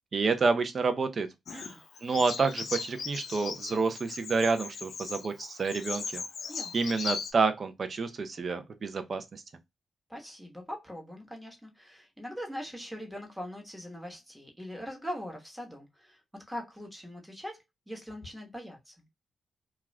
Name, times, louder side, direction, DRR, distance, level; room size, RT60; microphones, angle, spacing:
voice 1, 0.1-1.3 2.0-6.2 6.7-9.4, right 4 dB, 50° right, 0.6 m, -29 dB
Bird vocalization bird call bird song, 1.5-7.3, left 5 dB, 65° left, 0.5 m, -38 dB
voice 2, 10.1-19.1, equal, 5° right, 1.0 m, -42 dB
2.4 x 2.3 x 3.1 m
cardioid pair, 85°, 0 cm